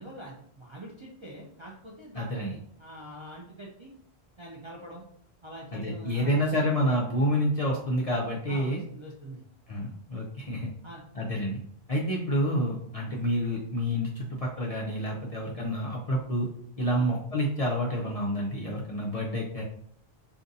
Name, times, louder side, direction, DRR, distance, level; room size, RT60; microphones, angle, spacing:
voice 1, 0.0-3.9 4.4-5.0 5.4-6.5 8.5-9.4 10.8-11.0 13.1-13.2 17.0-17.1, right 1 dB, 45° right, -4 dB, 0.4 m, -44 dB
voice 2, 2.1-2.5 5.7-8.8 9.7-10.7 11.1-11.6 11.9-16.5 16.8-19.6, equal, 50° left, -3 dB, 0.4 m, -28 dB
2.5 x 2.5 x 3.9 m, 0.67 s
omnidirectional pair, 1.1 m